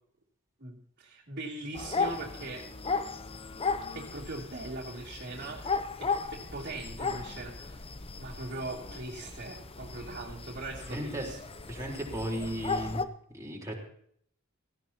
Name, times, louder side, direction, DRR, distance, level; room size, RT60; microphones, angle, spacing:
voice 1, 0.6-2.7 3.9-7.8 8.1-11.4, right 2 dB, 50° right, -7 dB, 3.1 m, -41 dB
sound 1, 1.7-13.1, left 4 dB, 30° left, 0.8 m, -36 dB
voice 2, 10.9-11.3 11.7-13.0 13.3-13.7, equal, 15° right, -2 dB, 4.0 m, -35 dB
17.0 x 16.0 x 2.9 m, 0.65 s
head